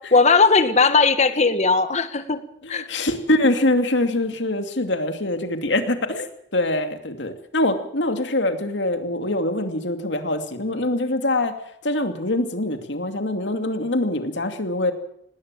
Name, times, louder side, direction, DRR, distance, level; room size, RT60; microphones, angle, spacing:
voice 1, 0.1-2.4 2.7-2.9, left 4 dB, 40° left, 11 dB, 1.6 m, -17 dB
voice 2, 2.6-11.5 11.8-14.9, left 1 dB, 70° left, 7 dB, 2.5 m, -24 dB
19.5 x 18.0 x 7.6 m, 0.73 s
head